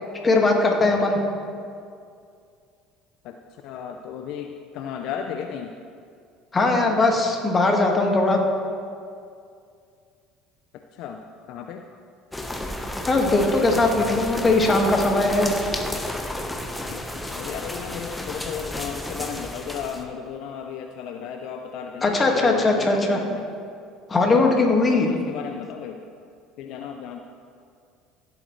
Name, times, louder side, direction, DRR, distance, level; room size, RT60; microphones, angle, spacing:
voice 1, 0.2-1.2 6.5-8.4 13.1-15.5 22.0-23.2 24.1-25.1, left 2 dB, 30° left, 1 dB, 1.9 m, -20 dB
voice 2, 3.6-5.7 10.7-11.2 11.5-11.8 16.9-23.4 24.3-24.5 24.8-26.0 26.6-27.2, left 7 dB, 65° left, 5 dB, 0.5 m, -34 dB
sound 1, 12.3-20.0, left 1 dB, 10° left, 1.1 m, -32 dB
16.0 x 8.0 x 3.2 m, 2.3 s
hypercardioid pair, 75°, 0 cm